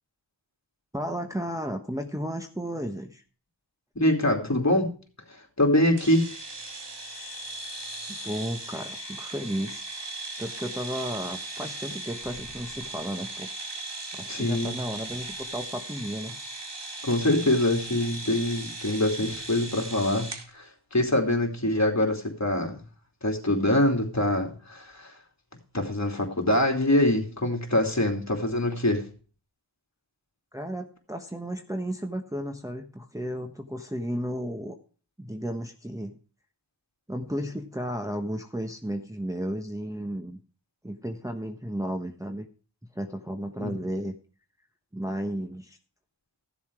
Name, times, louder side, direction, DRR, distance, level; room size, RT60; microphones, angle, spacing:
voice 1, 0.9-3.2 8.1-9.8 10.4-13.5 14.1-16.4 30.5-34.8 35.2-36.2 37.1-40.4 40.8-42.5 42.9-44.2 44.9-45.8, equal, 5° right, 3 dB, 1.2 m, -33 dB
voice 2, 3.9-5.0 5.3-6.3 14.3-14.8 17.0-20.3 20.5-22.8 23.2-25.1 25.7-29.0 43.6-43.7, left 1 dB, 35° left, 2 dB, 3.0 m, -24 dB
sound 1, 6.0-20.5, right 2 dB, 65° right, 2.2 m, -38 dB
15.0 x 7.3 x 4.8 m, 0.40 s
wide cardioid pair, 55°, 45 cm